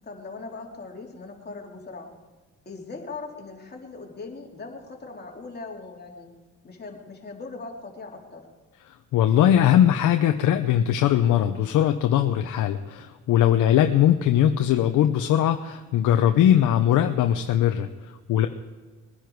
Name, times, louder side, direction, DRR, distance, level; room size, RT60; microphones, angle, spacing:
voice 1, 0.0-2.1 2.6-6.3 6.6-8.5, left 3 dB, 35° left, 0 dB, 3.1 m, -40 dB
voice 2, 9.1-17.9 18.3-18.5, left 10 dB, 80° left, 6 dB, 0.8 m, -20 dB
21.5 x 10.0 x 4.7 m, 1.3 s
cardioid pair, 90°, 30 cm